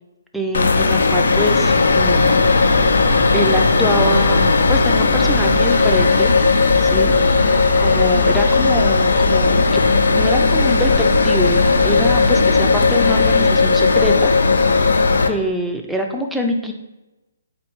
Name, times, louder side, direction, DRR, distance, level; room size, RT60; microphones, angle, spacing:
voice 1, 0.3-2.7 3.3-6.4 6.8-7.4 7.8-9.8 10.1-14.3 15.3-16.7, equal, ahead, 1 dB, 0.4 m, -24 dB
sound 1, 0.5-15.3, left 4 dB, 80° left, 0.4 m, -16 dB
sound 2, 1.9-13.4, right 1 dB, 35° left, 0.8 m, -27 dB
4.3 x 2.3 x 4.4 m, 1.0 s
hypercardioid pair, 160°, 0 cm